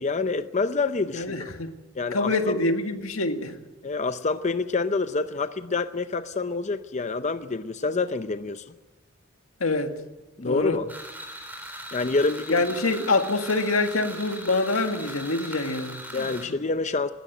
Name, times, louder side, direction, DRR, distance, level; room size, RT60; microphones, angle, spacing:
voice 1, 0.0-1.4 1.9-2.6 3.8-8.6 10.4-10.9 11.9-12.6 16.1-17.1, left 3 dB, 35° left, 0.6 m, -27 dB
voice 2, 1.1-1.7 2.1-3.5 9.6-10.0 10.4-10.8 12.5-16.3, left 2 dB, 90° left, 1.8 m, -25 dB
sound 1, 10.9-16.4, right 1 dB, 10° right, 4.1 m, -40 dB
19.5 x 16.5 x 9.1 m
head